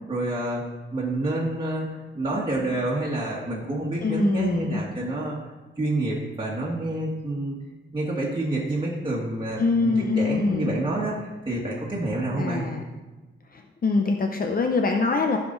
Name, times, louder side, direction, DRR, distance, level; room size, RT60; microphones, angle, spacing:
voice 1, 0.1-0.6 0.9-1.9 2.1-5.3 5.8-7.6 7.9-12.6, right 2 dB, 20° right, -5 dB, 1.6 m, -28 dB
voice 2, 4.0-4.8 9.6-10.7 12.4-12.8 13.5-15.4, left 3 dB, 45° left, 3 dB, 0.7 m, -24 dB
15.0 x 5.0 x 3.9 m, 1.2 s
wide cardioid pair, 135°, 21 cm